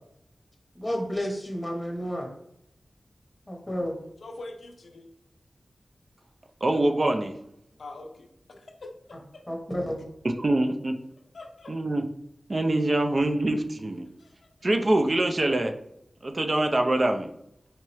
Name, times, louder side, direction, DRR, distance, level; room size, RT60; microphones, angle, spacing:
voice 1, 0.7-2.3 3.5-3.9 9.5-10.0, equal, 15° left, 0 dB, 0.9 m, -31 dB
voice 2, 4.2-5.1 7.8-8.3 8.6-9.4 11.3-11.7 14.2-14.3, left 2 dB, 80° left, 4 dB, 0.5 m, -43 dB
voice 3, 6.6-7.3 10.4-10.9 11.7-12.0 12.5-14.1 14.6-15.7 16.2-17.3, right 1 dB, 40° right, 5 dB, 0.4 m, -24 dB
4.6 x 3.0 x 3.0 m, 0.78 s
wide cardioid pair, 90°, 0 cm